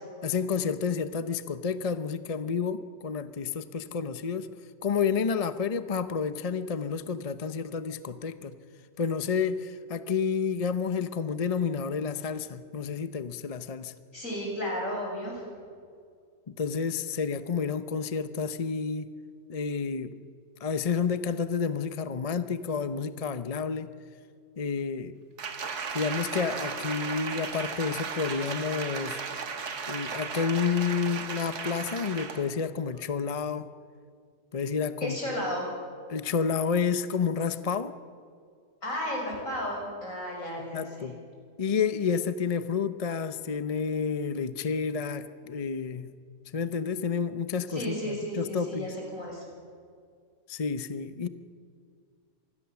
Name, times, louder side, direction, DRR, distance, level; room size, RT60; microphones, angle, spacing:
voice 1, 0.2-4.5 4.8-8.6 9.0-13.9 16.5-19.1 19.5-20.1 20.6-23.9 24.6-25.1 25.9-29.2 29.9-33.7 34.5-35.2 36.1-37.9 40.7-41.2 41.6-46.1 46.5-48.9 50.5-51.3, left 6 dB, 40° left, 11 dB, 0.5 m, -30 dB
voice 2, 14.1-15.4 35.0-35.7 38.8-41.1 47.7-49.4, equal, 55° left, -1 dB, 7.0 m, -33 dB
Applause, 25.4-32.5 32.9-33.1, right 5 dB, 75° right, 2.1 m, -35 dB
26.0 x 20.0 x 7.1 m, 2.1 s
omnidirectional pair, 1.7 m